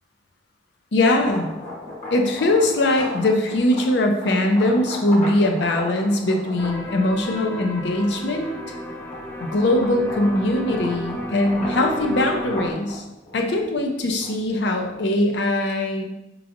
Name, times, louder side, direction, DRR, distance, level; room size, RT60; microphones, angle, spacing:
voice 1, 0.9-1.5 2.1-8.5 9.4-13.0 13.3-16.0, left 1 dB, 70° left, 3 dB, 0.6 m, -21 dB
sound 1, 1.2-7.6 8.2-15.3, left 1 dB, 40° left, 1.0 m, -37 dB
sound 2, 6.6-12.7, equal, 10° left, 0.3 m, -33 dB
4.9 x 3.1 x 2.5 m, 0.89 s
head